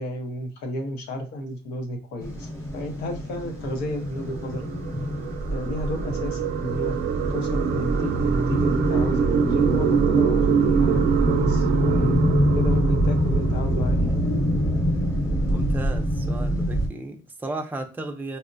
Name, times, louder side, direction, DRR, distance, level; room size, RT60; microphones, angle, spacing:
voice 1, 0.0-4.7 5.5-10.5 10.7-14.1, left 1 dB, 85° left, 0.8 m, -32 dB
sound 1, 2.2-16.9, equal, 15° left, 1.0 m, -25 dB
sound 2, 3.6-14.2, right 6 dB, 65° right, 0.5 m, -24 dB
voice 2, 15.5-18.4, right 2 dB, 10° right, 0.5 m, -34 dB
4.1 x 2.1 x 2.6 m
cardioid pair, 110°, 17 cm